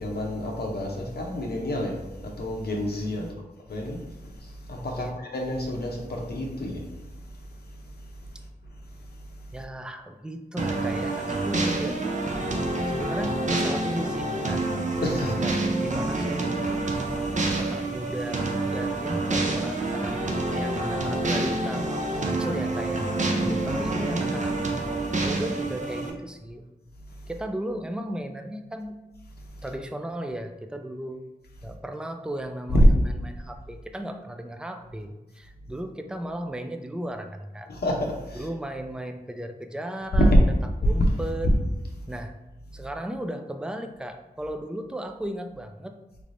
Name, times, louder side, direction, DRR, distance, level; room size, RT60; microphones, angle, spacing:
voice 1, 0.0-3.3 3.7-9.6 12.8-13.0 15.0-15.4 17.0-17.6 23.4-23.7 27.0-27.3 29.4-29.6 32.7-32.9 37.7-38.5 40.3-40.4 40.8-40.9 42.0-42.1, equal, 70° left, 0 dB, 0.7 m, -28 dB
voice 2, 9.5-12.0 12.9-14.7 15.2-15.5 15.8-16.6 17.5-20.2 20.5-23.1 23.6-24.6 25.2-26.6 27.3-29.0 29.6-31.3 31.6-37.7 38.4-40.4 40.8-41.5 42.1-42.4 42.7-46.0, right 1 dB, 5° right, 6 dB, 0.3 m, -35 dB
sound 1, 10.6-26.1, right 2 dB, 45° right, 0.6 m, -27 dB
3.2 x 3.2 x 2.5 m, 1.1 s
wide cardioid pair, 60°, 17 cm